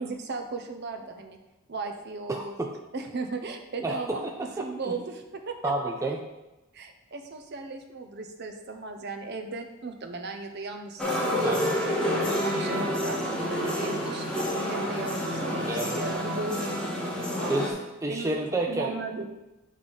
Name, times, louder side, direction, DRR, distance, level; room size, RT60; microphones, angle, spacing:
voice 1, 0.0-1.4 1.7-2.6 2.9-5.7 6.7-12.0 12.4-14.3 14.6-17.3 18.1-18.3 18.7-19.3, right 3 dB, 50° right, 5 dB, 0.7 m, -36 dB
voice 2, 2.3-2.7 3.8-4.5 4.8-5.0 5.6-6.2 11.4-11.7 15.6-16.0 17.5-18.9, right 2 dB, 15° right, 2 dB, 0.4 m, -30 dB
sound 1, 11.0-17.7, equal, 5° left, 1.5 m, -28 dB
7.1 x 3.3 x 5.4 m, 1.0 s
head